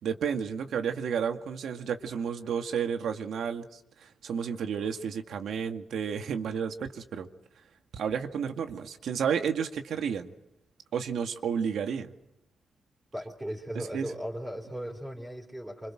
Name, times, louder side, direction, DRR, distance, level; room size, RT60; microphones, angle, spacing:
voice 1, 0.0-3.7 4.0-7.3 7.9-10.3 10.9-12.1 13.7-14.1, right 7 dB, 90° right, 6 dB, 2.0 m, -31 dB
voice 2, 13.1-15.9, equal, 10° right, -3 dB, 4.5 m, -37 dB
28.0 x 25.5 x 6.4 m, 0.80 s
wide cardioid pair, 145°, 0 cm